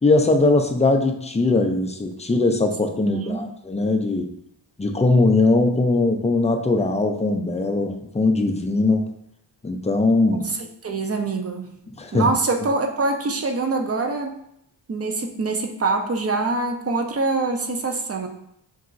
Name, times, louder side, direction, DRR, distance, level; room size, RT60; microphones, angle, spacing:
voice 1, 0.0-4.3 4.8-9.0 9.6-10.4 12.0-12.3, left 2 dB, 15° left, 5 dB, 0.5 m, -20 dB
voice 2, 3.0-3.4 10.3-11.7 12.1-14.4 14.9-18.3, right 3 dB, 30° right, 4 dB, 0.6 m, -24 dB
5.4 x 2.9 x 2.5 m, 0.74 s
cardioid pair, 75°, 46 cm